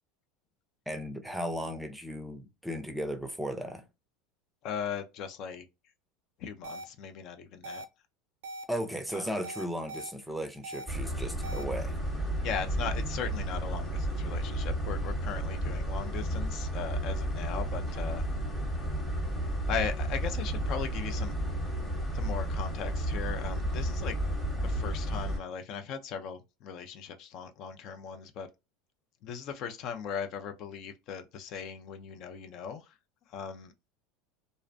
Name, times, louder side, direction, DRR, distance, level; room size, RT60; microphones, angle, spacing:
voice 1, 0.9-3.8 8.7-12.0, equal, 5° right, 0.5 m, -36 dB
voice 2, 4.6-5.7 6.4-7.8 9.1-9.3 12.4-18.3 19.7-21.3 22.1-24.2 24.6-28.5 29.2-32.9 33.3-33.9, left 7 dB, 55° left, 0.4 m, -38 dB
sound 1, 6.6-6.8 7.6-7.8 8.4-8.6 9.4-10.1 10.6-10.8 11.4-11.6, right 1 dB, 80° right, 0.4 m, -40 dB
sound 2, 10.9-25.4, right 1 dB, 15° left, 1.0 m, -32 dB
2.4 x 2.0 x 2.5 m
hypercardioid pair, 95°, 0 cm